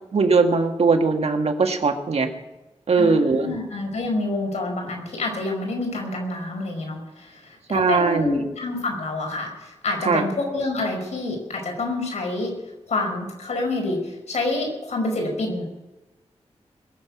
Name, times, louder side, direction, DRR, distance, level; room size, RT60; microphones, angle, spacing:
voice 1, 0.1-2.3 2.9-3.5 7.7-8.5 10.0-10.2, right 4 dB, 65° right, 5 dB, 1.7 m, -20 dB
voice 2, 3.0-12.5 12.9-15.7, left 2 dB, 80° left, 2 dB, 5.2 m, -27 dB
21.5 x 7.6 x 8.4 m, 1.1 s
cardioid pair, 60°, 11 cm